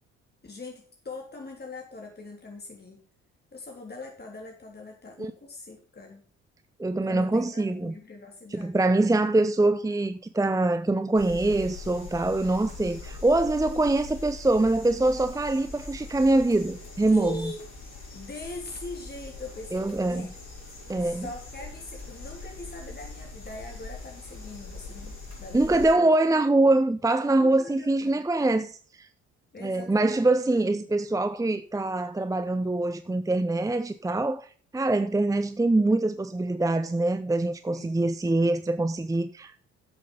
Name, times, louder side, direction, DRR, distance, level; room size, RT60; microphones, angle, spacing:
voice 1, 0.4-3.0 3.5-6.2 7.0-8.8 17.1-17.6 18.1-19.8 20.1-20.3 21.0-26.1 27.4-28.3 29.5-30.2 37.7-37.9, left 3 dB, 25° left, 3.4 m, -42 dB
voice 2, 6.8-7.9 8.5-17.5 19.7-20.3 20.9-21.3 25.5-29.1 29.6-34.5 34.7-39.5, right 2 dB, 10° right, 0.8 m, -24 dB
sound 1, 11.1-25.9, left 3 dB, 45° left, 6.5 m, -42 dB
10.5 x 7.7 x 5.3 m
hypercardioid pair, 50°, 36 cm